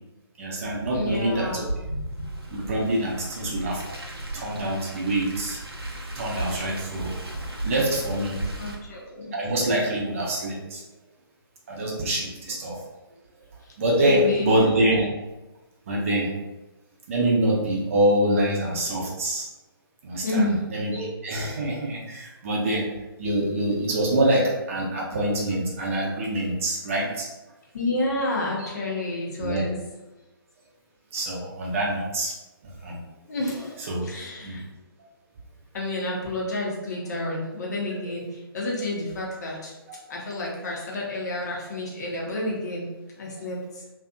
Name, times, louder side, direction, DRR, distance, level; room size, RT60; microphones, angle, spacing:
voice 1, 0.4-1.6 2.5-3.8 4.3-5.6 6.2-7.1 7.6-8.4 9.3-10.8 11.7-12.8 13.8-15.1 15.9-16.3 17.1-19.5 20.0-22.9 23.2-27.3 28.6-28.7 29.4-29.6 31.1-32.3 32.6-33.0 33.5-33.6 33.9-34.0 34.4-34.6, right 1 dB, 35° right, -3 dB, 0.7 m, -25 dB
Car, 0.6-8.8, right 1 dB, 85° right, 0.6 m, -35 dB
voice 2, 0.9-1.7 8.6-9.3 14.0-14.5 20.2-20.7 27.7-29.8 33.3-33.7 34.0-34.6 35.7-38.3 38.5-39.7 40.1-42.9 43.2-43.6, left 2 dB, 45° left, -3 dB, 0.8 m, -29 dB
2.7 x 2.5 x 2.3 m, 1.0 s
figure-of-eight pair, 135°, 13 cm